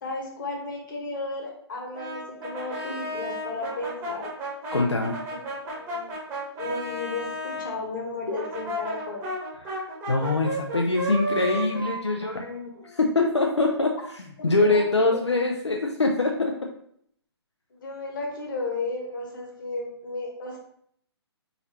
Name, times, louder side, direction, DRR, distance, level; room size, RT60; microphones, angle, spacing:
voice 1, 0.0-4.3 5.7-6.1 6.6-9.3 14.5-15.2 17.7-20.6, left 3 dB, 45° left, 0 dB, 1.3 m, -34 dB
Brass instrument, 1.9-7.7 8.3-13.1, equal, 15° right, 1.2 m, -33 dB
voice 2, 4.7-5.2 9.7-13.9 14.4-16.5, left 2 dB, 80° left, 1 dB, 0.6 m, -24 dB
4.2 x 4.0 x 2.9 m, 0.67 s
figure-of-eight pair, 130°, 14 cm